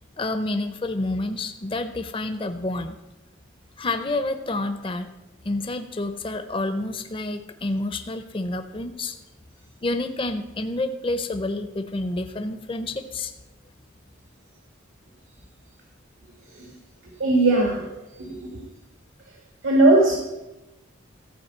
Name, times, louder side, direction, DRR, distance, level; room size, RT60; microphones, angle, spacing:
voice 1, 0.2-3.0 3.8-5.1 5.4-9.2 9.8-13.3, left 2 dB, 25° left, 9 dB, 0.5 m, -29 dB
voice 2, 17.2-18.6 19.6-20.1, right 2 dB, 85° right, -1 dB, 1.8 m, -19 dB
14.0 x 4.8 x 7.8 m, 1.0 s
head